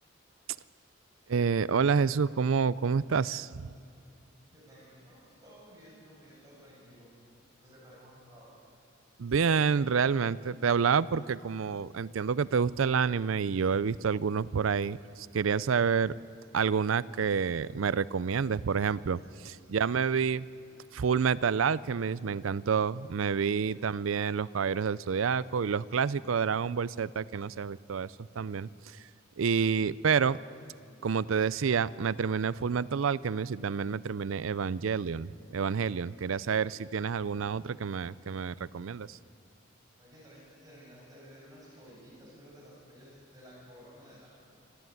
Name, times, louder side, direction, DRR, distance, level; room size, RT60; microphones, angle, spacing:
voice 1, 1.3-3.7 9.2-16.1 16.5-20.5 20.9-28.7 29.4-30.4 31.0-39.2, right 6 dB, 90° right, 19 dB, 0.5 m, -28 dB
voice 2, 4.5-7.1 7.6-8.5 23.0-23.1 40.0-44.3, equal, 20° right, -5 dB, 7.4 m, -54 dB
26.0 x 13.5 x 9.3 m, 2.4 s
head